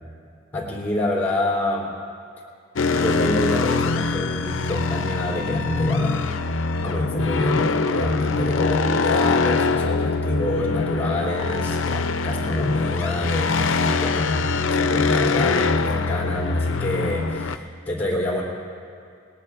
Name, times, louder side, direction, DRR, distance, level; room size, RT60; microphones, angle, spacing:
voice 1, 0.5-1.9 2.9-6.3 6.8-14.5 14.8-18.4, left 1 dB, 10° left, -3 dB, 3.3 m, -26 dB
sound 1, 2.8-17.6, left 4 dB, 90° left, 0.6 m, -23 dB
28.5 x 19.5 x 2.5 m, 2.4 s
head